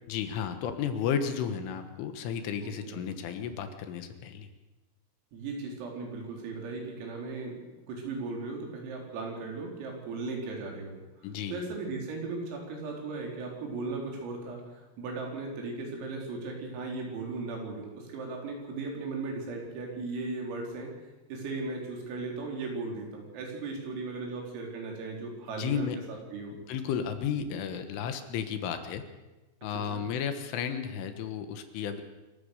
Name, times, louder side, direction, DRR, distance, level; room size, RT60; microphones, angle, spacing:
voice 1, 0.1-4.5 11.2-11.6 25.5-26.0 26.5-29.0 29.6-32.0, left 7 dB, 75° left, 8 dB, 3.7 m, -33 dB
voice 2, 2.6-3.1 5.3-7.6 7.9-11.0 11.5-20.9 21.3-26.5 29.9-30.1, right 3 dB, 90° right, 0 dB, 6.6 m, -37 dB
26.5 x 14.5 x 6.6 m, 1.1 s
omnidirectional pair, 5.8 m